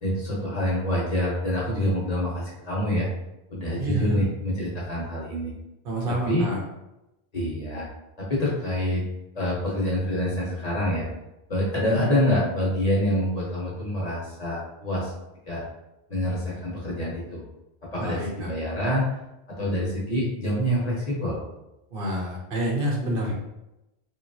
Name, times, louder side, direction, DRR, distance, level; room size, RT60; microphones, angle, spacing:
voice 1, 0.0-3.1 3.5-5.5 6.3-6.4 7.3-7.9 8.2-9.0 9.3-11.1 11.5-15.1 15.5-15.6 16.1-17.4 17.9-19.1 19.5-21.4, equal, 40° left, -5 dB, 0.8 m, -26 dB
voice 2, 3.8-4.2 5.8-6.6 11.8-12.0 18.0-18.5 21.9-23.3, right 1 dB, 65° right, -1 dB, 0.8 m, -28 dB
2.9 x 2.3 x 2.6 m, 0.91 s
omnidirectional pair, 1.1 m